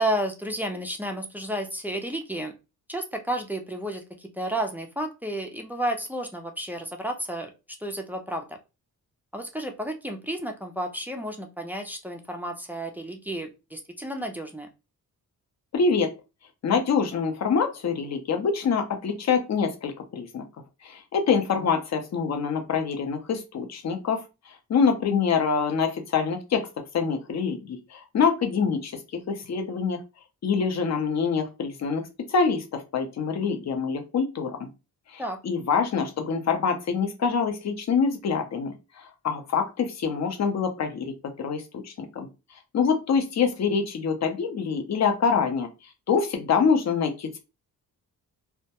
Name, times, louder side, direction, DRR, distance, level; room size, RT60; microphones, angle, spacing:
voice 1, 0.0-2.5 2.9-7.5 7.8-8.6 9.3-14.7 35.2-35.4, right 1 dB, 5° right, 3 dB, 0.3 m, -31 dB
voice 2, 15.7-16.1 16.6-20.4 20.8-24.2 24.7-26.7 26.9-29.0 29.3-30.0 30.4-34.7 35.1-42.3 42.7-45.7 46.1-47.4, left 5 dB, 50° left, 6 dB, 0.6 m, -25 dB
2.2 x 2.1 x 2.8 m, 0.28 s
wide cardioid pair, 115°, 35 cm